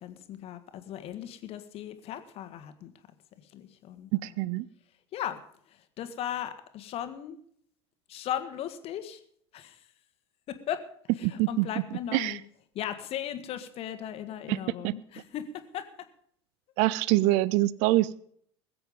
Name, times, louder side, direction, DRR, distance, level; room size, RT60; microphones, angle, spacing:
voice 1, 0.0-2.9 3.5-4.3 5.1-5.4 6.0-7.4 8.1-9.2 9.5-9.8 10.5-10.8 11.2-12.4 12.7-15.9, left 10 dB, 45° left, 10 dB, 1.6 m, -37 dB
voice 2, 4.2-4.7 11.2-11.7 12.1-12.4 14.5-14.6 14.8-14.9 16.8-18.2, right 18 dB, 55° right, 21 dB, 0.5 m, -25 dB
21.0 x 7.9 x 5.3 m, 0.64 s
figure-of-eight pair, 70°, 14 cm